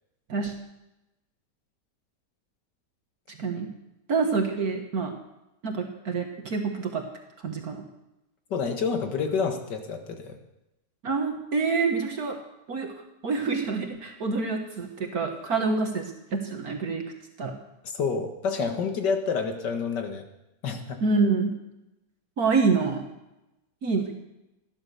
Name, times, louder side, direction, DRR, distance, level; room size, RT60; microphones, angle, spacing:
voice 1, 3.3-3.7 4.1-5.1 5.6-7.0 7.4-7.8 11.0-12.4 12.7-12.9 13.2-17.0 17.4-17.6 21.0-21.5 22.4-23.1 23.8-24.1, right 4 dB, 60° right, 3 dB, 1.9 m, -27 dB
voice 2, 8.5-10.4 18.0-20.2 20.6-21.0, left 5 dB, 75° left, 5 dB, 2.3 m, -28 dB
17.0 x 11.0 x 6.9 m, 0.93 s
omnidirectional pair, 1.9 m